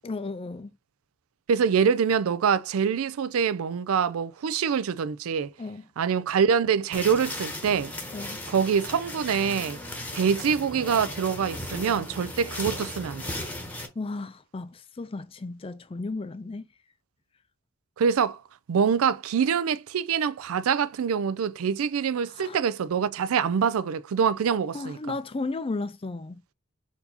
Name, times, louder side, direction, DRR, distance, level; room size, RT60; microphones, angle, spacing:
voice 1, 0.0-0.7 5.6-5.9 8.1-8.4 14.0-16.7 22.3-22.6 24.7-26.4, left 3 dB, 25° left, 0.4 m, -34 dB
voice 2, 1.5-5.5 6.0-7.9 8.5-9.8 10.1-13.4 18.0-18.4 18.7-25.0, right 7 dB, 75° right, 0.4 m, -25 dB
sound 1, 6.9-13.9, left 1 dB, 10° left, 1.0 m, -36 dB
4.5 x 2.7 x 4.1 m
head